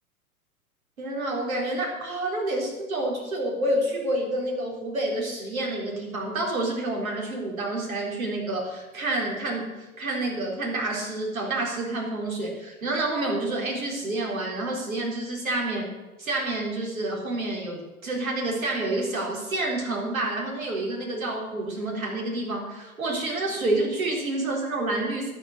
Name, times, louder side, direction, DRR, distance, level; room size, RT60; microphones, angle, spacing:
voice 1, 1.0-15.9 16.2-25.3, right 2 dB, 65° right, -1 dB, 3.9 m, -28 dB
11.5 x 8.9 x 6.7 m, 1.1 s
figure-of-eight pair, 105°, 44 cm